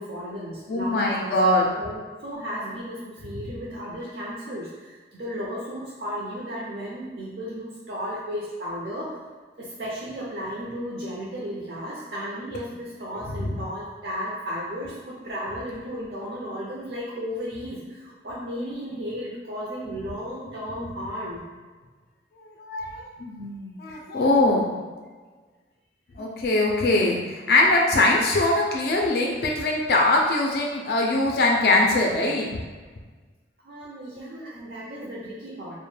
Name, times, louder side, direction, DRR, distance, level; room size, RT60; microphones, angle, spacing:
voice 1, 0.0-9.2 9.6-21.4 33.6-35.8, equal, 65° right, -6 dB, 0.5 m, -34 dB
voice 2, 0.7-1.7 13.4-13.6 22.6-24.8 26.2-32.6, left 2 dB, 60° left, -1 dB, 0.3 m, -22 dB
2.1 x 2.0 x 3.1 m, 1.4 s
head